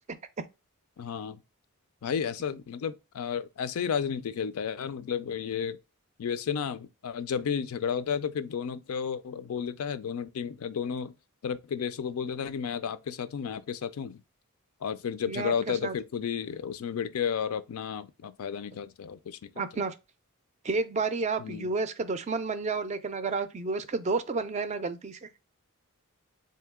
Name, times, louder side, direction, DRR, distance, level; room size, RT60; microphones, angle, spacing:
voice 1, 1.0-1.4 2.0-5.8 6.2-11.1 11.4-14.2 14.8-19.5 21.4-21.7, left 7 dB, 75° left, 0.4 m, -32 dB
voice 2, 15.3-15.9 19.6-19.9 20.6-25.3, right 4 dB, 30° right, 0.3 m, -31 dB
3.8 x 2.8 x 3.5 m
head